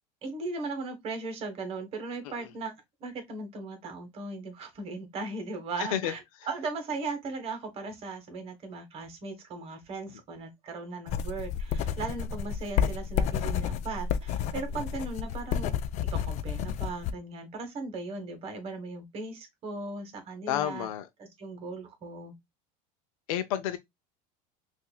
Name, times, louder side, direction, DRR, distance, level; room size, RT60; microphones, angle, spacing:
voice 1, 0.2-2.7 3.0-6.2 6.5-15.7 16.0-20.9 21.2-22.3, right 3 dB, 35° right, 1.4 m, -38 dB
voice 2, 5.8-6.1 20.5-21.1 23.3-23.8, left 11 dB, 85° left, 0.6 m, -30 dB
sound 1, 11.1-17.1, left 8 dB, 40° left, 0.4 m, -30 dB
5.6 x 2.6 x 2.3 m
cardioid pair, 150°, 17 cm